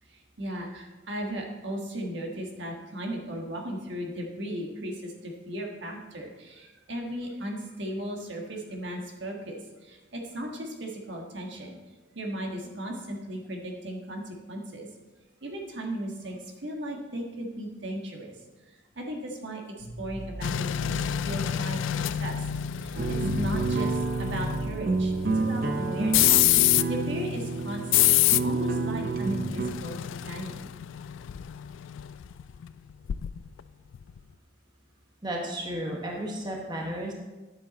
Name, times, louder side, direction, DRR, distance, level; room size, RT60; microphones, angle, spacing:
voice 1, 0.0-11.8 12.1-14.9 15.4-18.4 18.7-21.8 22.1-22.5 22.7-23.0 23.3-26.3 26.6-28.2 28.4-30.7, right 1 dB, 65° right, 1 dB, 1.5 m, -36 dB
sound 1, 19.8-25.8, right 1 dB, 50° left, 1.4 m, -40 dB
sound 2, 20.4-33.6 33.9-34.2, left 14 dB, 80° left, 0.3 m, -27 dB
sound 3, 23.0-29.7, right 3 dB, 50° right, 0.6 m, -29 dB
voice 2, 35.2-37.1, right 1 dB, 25° right, 0 dB, 1.2 m, -33 dB
9.9 x 7.8 x 4.1 m, 1.2 s
head